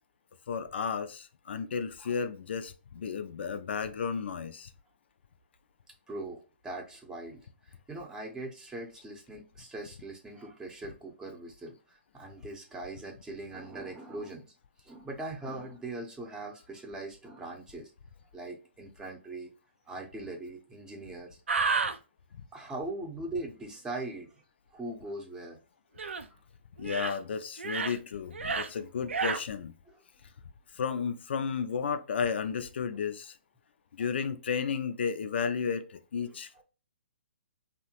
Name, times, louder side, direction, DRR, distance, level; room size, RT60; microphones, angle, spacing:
voice 1, 0.5-4.7 26.8-29.7 30.7-33.3 33.9-36.6, left 6 dB, 65° left, 0.4 m, -33 dB
voice 2, 6.1-14.5 14.8-17.9 18.3-19.5 19.9-21.4 22.5-24.3 24.7-25.6 26.3-26.4 28.5-28.8 29.9-30.0 36.5-36.6, right 2 dB, 10° right, 0.6 m, -41 dB
sound 1, 21.5-22.0 26.0-26.2 26.8-27.2 27.6-28.0 28.3-28.7 29.1-29.4, right 4 dB, 85° right, 0.4 m, -30 dB
2.8 x 2.1 x 2.7 m
hypercardioid pair, 135°, 6 cm